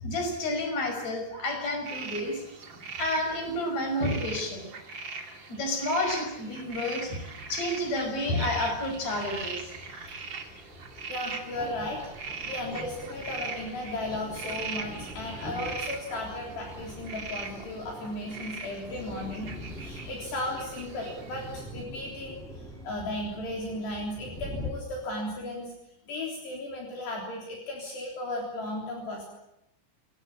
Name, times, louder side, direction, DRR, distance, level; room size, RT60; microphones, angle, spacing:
voice 1, 0.0-2.4 3.0-4.7 5.5-7.2 7.5-9.7, left 1 dB, 35° left, 5 dB, 6.4 m, -30 dB
sound 1, 1.8-21.6, right 4 dB, 35° right, 2.0 m, -41 dB
voice 2, 6.7-7.0 11.1-12.0 12.5-25.7 26.1-29.3, left 1 dB, 55° left, 0 dB, 5.5 m, -35 dB
sound 2, 7.4-24.7, left 1 dB, ahead, 6.4 m, -44 dB
28.0 x 18.5 x 8.7 m, 0.84 s
omnidirectional pair, 5.8 m